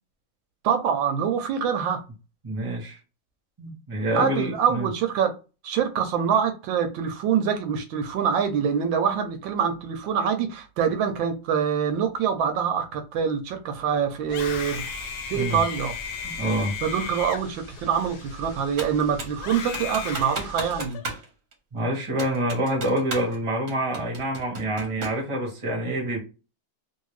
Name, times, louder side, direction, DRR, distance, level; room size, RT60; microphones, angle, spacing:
voice 1, 0.6-2.0 4.1-5.3 5.6-14.8 15.3-15.9 16.8-21.0, right 7 dB, 75° right, 1.3 m, -25 dB
voice 2, 2.4-3.0 3.6-4.9 15.3-15.6 16.2-16.7 21.7-26.2, right 1 dB, 20° right, 0.9 m, -27 dB
Screaming, 14.2-18.7 19.4-21.1, left 7 dB, 70° left, 1.0 m, -36 dB
sound 1, 14.3-20.9, left 1 dB, 85° left, 0.3 m, -44 dB
Computer keyboard, 18.8-19.4 19.7-21.3 21.5-21.6 22.2-23.4 23.7-25.2, right 3 dB, 50° right, 1.0 m, -35 dB
2.9 x 2.7 x 3.1 m
omnidirectional pair, 2.2 m